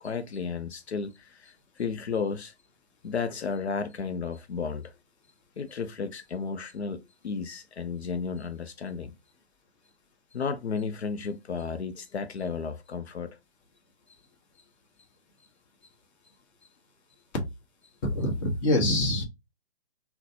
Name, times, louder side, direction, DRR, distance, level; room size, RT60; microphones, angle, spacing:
voice 1, 0.0-2.5 3.0-4.9 5.6-9.1 10.3-13.4, left 5 dB, 80° left, 0.6 m, -33 dB
voice 2, 18.0-19.2, left 1 dB, 30° left, 1.3 m, -25 dB
3.8 x 2.2 x 2.7 m
figure-of-eight pair, 140°, 32 cm